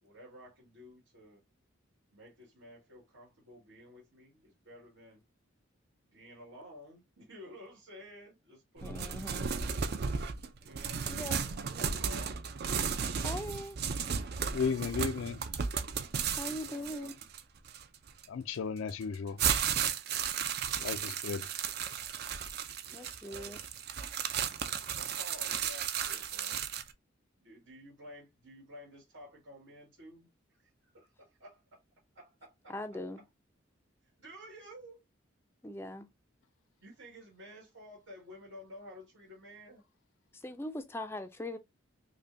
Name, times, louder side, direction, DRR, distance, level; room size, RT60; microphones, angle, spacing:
voice 1, 0.0-1.4 2.1-5.2 6.1-9.7 10.6-12.4 16.3-17.1 20.4-21.1 22.8-23.6 24.9-26.6 27.4-31.8 32.1-33.0 34.2-35.0 36.8-39.8, equal, 85° right, 1.9 m, -52 dB
voice 2, 8.8-9.5 11.1-11.4 13.2-13.8 16.4-17.1 22.9-23.6 32.7-33.2 35.6-36.1 40.3-41.6, left 1 dB, 10° left, 0.4 m, -40 dB
sound 1, 8.8-18.2 18.9-26.9, right 7 dB, 50° right, 0.4 m, -34 dB
voice 3, 14.5-15.4 18.3-19.4 20.8-21.5, left 5 dB, 80° left, 0.4 m, -34 dB
5.2 x 2.2 x 2.6 m
head